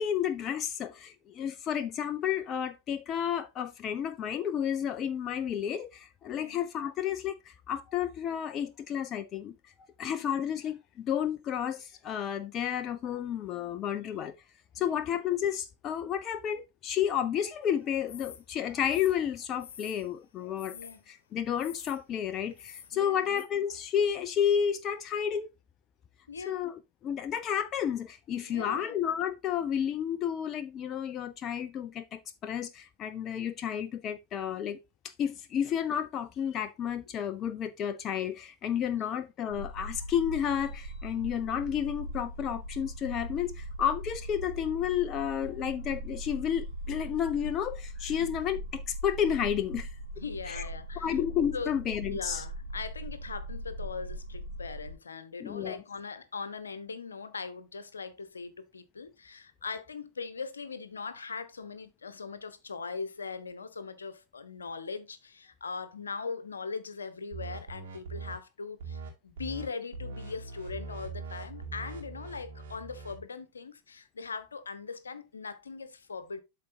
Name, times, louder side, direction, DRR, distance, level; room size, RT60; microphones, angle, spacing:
voice 1, 0.0-9.5 10.0-14.4 14.8-20.8 21.1-25.5 26.5-26.7 27.0-34.8 35.0-49.9 50.5-50.6 51.0-52.4 55.4-55.8, left 9 dB, 30° left, 0.4 m, -31 dB
voice 2, 6.3-6.6 14.8-15.0 20.7-21.0 22.9-23.3 26.3-26.6 28.4-29.0 38.9-39.1 48.2-48.3 50.2-51.2 51.5-51.7 52.0-76.4, left 4 dB, 75° left, 0.9 m, -40 dB
sound 1, 18.1-18.4 18.8-20.1 20.6-21.0 21.6-22.0 22.5-22.9 23.4-23.5, left 8 dB, 55° left, 1.2 m, -48 dB
sound 2, 39.5-55.0, right 1 dB, 80° right, 1.0 m, -40 dB
sound 3, 67.3-68.3 68.8-69.1 69.4-69.7 69.9-73.2, right 4 dB, 60° right, 2.4 m, -41 dB
12.0 x 4.1 x 2.7 m
figure-of-eight pair, 90°, 0 cm